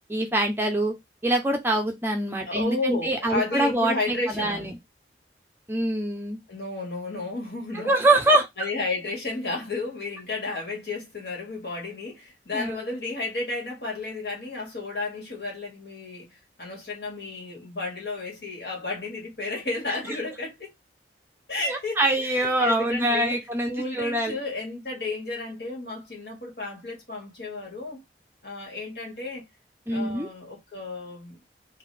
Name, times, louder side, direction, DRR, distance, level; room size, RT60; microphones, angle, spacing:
voice 1, 0.1-0.9 1.2-4.7 5.7-6.4 7.7-8.5 12.5-12.8 21.6-24.4 29.9-30.3, right 1 dB, 10° right, 0.6 m, -24 dB
voice 2, 2.4-4.7 6.5-8.0 8.6-16.3 16.6-20.7 21.5-23.4 23.7-28.0 28.4-29.4 29.9-31.4, left 3 dB, 60° left, 2.0 m, -32 dB
3.8 x 2.5 x 3.3 m
head